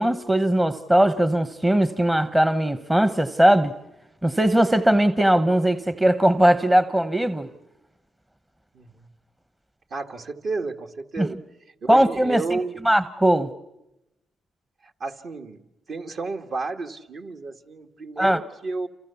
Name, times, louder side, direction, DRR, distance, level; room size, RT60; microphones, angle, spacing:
voice 1, 0.0-3.7 4.2-7.5 11.2-11.3 11.9-12.6 12.8-13.5 18.2-18.4, right 1 dB, 10° right, 12 dB, 1.0 m, -19 dB
voice 2, 9.9-11.4 11.8-12.8 15.0-15.6 15.9-18.9, right 3 dB, 55° right, 4 dB, 1.9 m, -31 dB
28.5 x 27.0 x 7.0 m, 0.92 s
cardioid pair, 90°, 0 cm